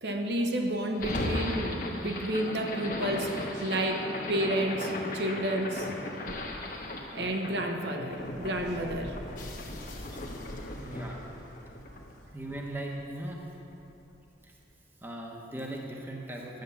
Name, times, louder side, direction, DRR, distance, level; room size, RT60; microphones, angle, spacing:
voice 1, 0.0-5.9 6.3-6.4 7.1-9.2, right 1 dB, 65° right, 3 dB, 0.9 m, -31 dB
sound 1, 0.9-13.2, left 1 dB, 45° left, 1.1 m, -37 dB
voice 2, 10.8-11.2 12.3-13.4 14.4-14.5 15.0-16.6, right 1 dB, 10° right, -1 dB, 0.9 m, -38 dB
10.5 x 7.3 x 7.0 m, 3.0 s
head